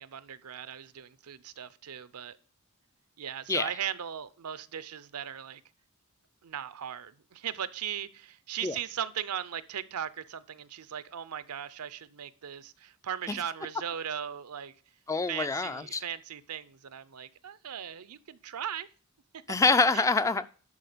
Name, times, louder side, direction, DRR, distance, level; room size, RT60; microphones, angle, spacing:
voice 1, 0.0-2.4 3.2-5.6 6.4-14.7 15.3-18.9 19.9-20.0, right 9 dB, 80° right, 0.6 m, -38 dB
voice 2, 15.1-16.0 19.5-20.5, left 3 dB, 15° left, 0.3 m, -25 dB
11.0 x 4.2 x 6.7 m
head